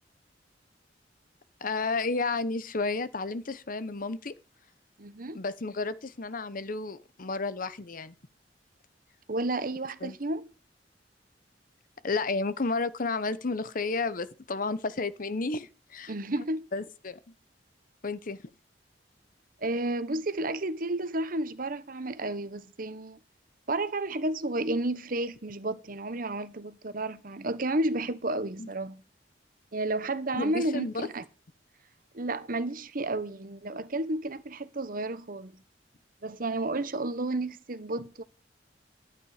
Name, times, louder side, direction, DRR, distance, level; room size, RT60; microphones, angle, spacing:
voice 1, 1.6-4.3 5.3-8.1 10.0-10.2 12.0-16.1 16.7-17.2 18.0-18.4 28.6-28.7 30.3-31.1, left 3 dB, 50° left, 0.9 m, -32 dB
voice 2, 5.0-5.4 9.3-10.5 16.1-16.7 19.6-23.2 23.7-29.0 29.7-31.2 32.1-35.5 36.2-38.2, right 2 dB, 50° right, 1.1 m, -31 dB
12.0 x 9.9 x 5.0 m
head